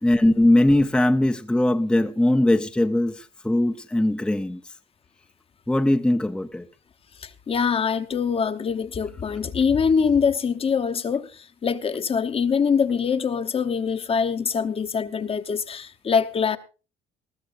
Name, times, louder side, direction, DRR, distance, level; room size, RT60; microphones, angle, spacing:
voice 1, 0.0-4.6 5.7-6.7, left 1 dB, 5° left, 0.6 m, -20 dB
voice 2, 7.2-16.6, left 6 dB, 35° left, 0.9 m, -24 dB
20.0 x 13.5 x 2.6 m
cardioid pair, 110°, 17 cm